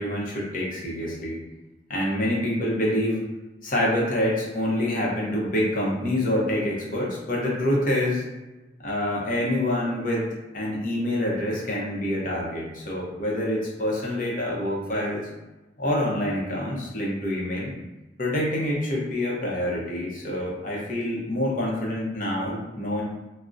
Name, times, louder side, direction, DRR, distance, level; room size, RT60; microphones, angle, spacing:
voice 1, 0.0-1.4 1.9-3.2 3.6-8.2 8.8-10.3 10.5-15.3 15.8-17.7 18.2-23.0, left 1 dB, 45° left, -4 dB, 0.7 m, -26 dB
3.6 x 2.0 x 2.5 m, 1.1 s
head